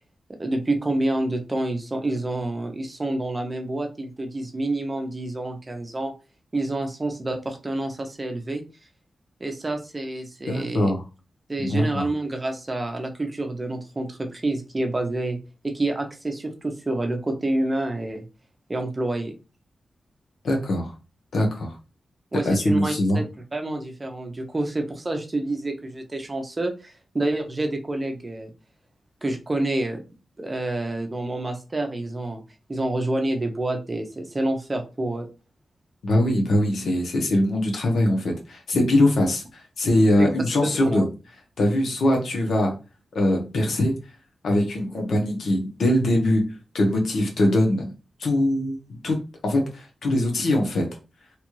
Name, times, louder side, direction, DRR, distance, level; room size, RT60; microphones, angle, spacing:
voice 1, 0.4-6.1 6.5-8.6 9.4-10.9 11.5-15.4 15.6-18.2 18.7-19.3 22.3-23.3 23.5-28.5 29.2-30.0 30.4-32.4 32.7-35.3 40.2-40.3 40.8-41.0, right 2 dB, 25° right, 4 dB, 0.7 m, -28 dB
voice 2, 10.5-11.0 11.6-12.1 20.4-20.9 21.3-21.7 22.4-23.2 36.0-41.1 41.6-42.8 43.1-44.0 44.4-47.9 48.2-50.9, left 1 dB, 75° left, 1 dB, 0.9 m, -22 dB
3.0 x 2.4 x 3.0 m, 0.32 s
wide cardioid pair, 105°, 0 cm